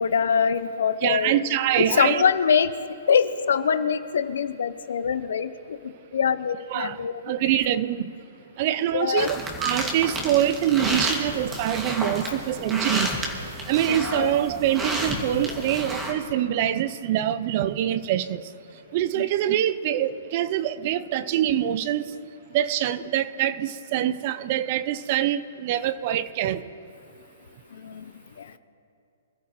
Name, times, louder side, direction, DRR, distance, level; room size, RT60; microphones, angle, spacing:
voice 1, 0.0-1.4 1.8-2.7 3.1-5.5 6.1-7.2 8.9-9.3 13.9-14.3 19.2-19.3 27.8-28.1, left 7 dB, 70° left, 13 dB, 0.8 m, -23 dB
voice 2, 1.0-2.3 6.7-7.0 7.3-8.1 8.6-13.1 13.7-18.4 18.9-22.1 22.5-26.6, right 11 dB, 45° right, 15 dB, 0.6 m, -24 dB
sound 1, 9.2-16.1, right 1 dB, 15° right, 2.3 m, -31 dB
26.0 x 13.0 x 3.2 m, 2.7 s
hypercardioid pair, 125°, 0 cm